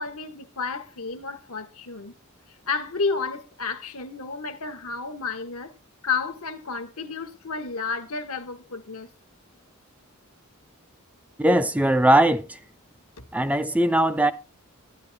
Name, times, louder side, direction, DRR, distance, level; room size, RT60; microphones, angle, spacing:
voice 1, 0.0-2.1 2.5-5.7 6.0-9.1 13.2-13.3, left 4 dB, 85° left, 1.4 m, -31 dB
voice 2, 11.4-12.6 13.3-14.3, right 1 dB, 5° right, 0.4 m, -20 dB
11.5 x 9.9 x 3.5 m
head